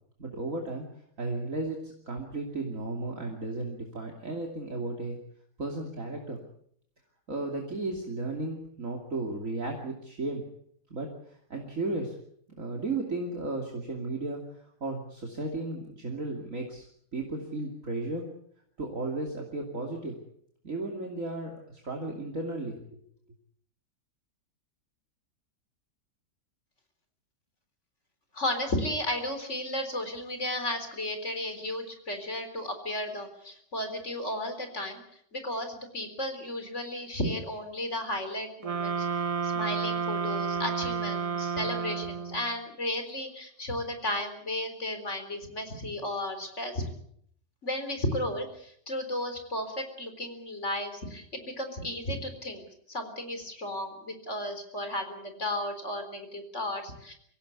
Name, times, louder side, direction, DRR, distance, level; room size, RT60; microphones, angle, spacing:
voice 1, 0.2-0.9 1.2-5.1 5.6-6.4 7.3-10.4 10.9-12.1 12.6-14.4 14.8-16.8 17.1-18.3 18.8-20.2 20.6-23.0, right 2 dB, 45° right, 0 dB, 3.1 m, -34 dB
voice 2, 28.3-35.0 35.3-39.1 39.4-46.9 47.6-57.1, left 1 dB, 40° left, 7 dB, 4.2 m, -34 dB
sound 1, 38.6-42.5, right 6 dB, 25° right, 0.9 m, -31 dB
25.0 x 16.5 x 8.3 m, 0.68 s
omnidirectional pair, 1.9 m